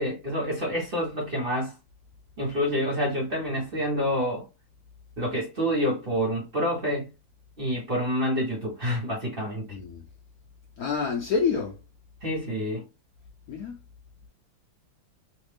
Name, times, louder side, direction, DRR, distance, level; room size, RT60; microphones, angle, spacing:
voice 1, 0.0-1.7 2.4-4.4 5.2-7.1 7.6-9.6 12.2-12.8, equal, 35° right, 1.1 m, -27 dB
voice 2, 9.7-10.0 10.8-11.8 13.5-13.8, left 5 dB, 65° left, 0.9 m, -27 dB
3.3 x 2.3 x 3.3 m
omnidirectional pair, 2.1 m